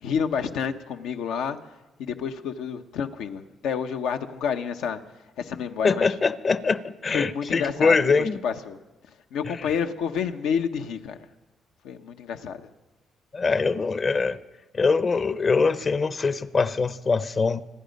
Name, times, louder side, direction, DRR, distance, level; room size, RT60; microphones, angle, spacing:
voice 1, 0.0-1.6 2.0-5.0 5.4-6.1 7.1-8.0 8.4-8.8 9.3-11.2 11.8-12.6, left 7 dB, 90° left, 0.9 m, -29 dB
voice 2, 5.8-8.4 9.5-9.6 13.3-14.4 14.7-17.6, left 4 dB, 40° left, 0.7 m, -23 dB
26.0 x 10.0 x 5.3 m
cardioid pair, 90°, 0 cm